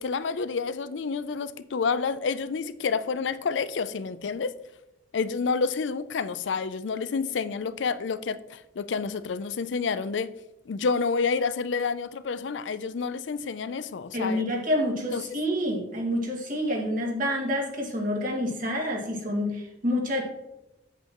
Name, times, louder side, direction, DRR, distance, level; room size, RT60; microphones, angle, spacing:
voice 1, 0.0-4.5 5.1-10.3 10.7-14.4 15.1-15.2, left 5 dB, 80° left, 0.5 m, -29 dB
voice 2, 14.1-20.2, equal, 50° right, 2.1 m, -28 dB
8.1 x 7.9 x 3.0 m
head